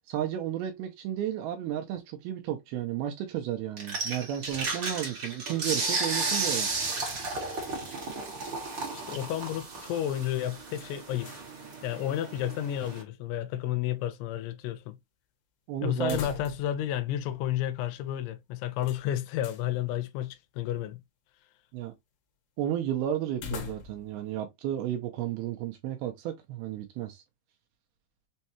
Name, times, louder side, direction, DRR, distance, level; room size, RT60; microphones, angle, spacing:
voice 1, 0.1-6.7 15.7-16.4 21.7-21.9 22.6-27.2, right 11 dB, 80° right, 2.3 m, -33 dB
sound 1, 3.8-13.0, right 3 dB, 55° right, 1.3 m, -34 dB
voice 2, 8.9-11.3 11.8-15.0 15.8-21.0, left 12 dB, 85° left, 2.6 m, -31 dB
sound 2, 10.7-11.6 11.9-12.0 16.0-16.8 17.1-17.2 18.8-19.7 23.3-24.2, left 8 dB, 65° left, 2.2 m, -41 dB
6.3 x 2.3 x 2.7 m
omnidirectional pair, 4.9 m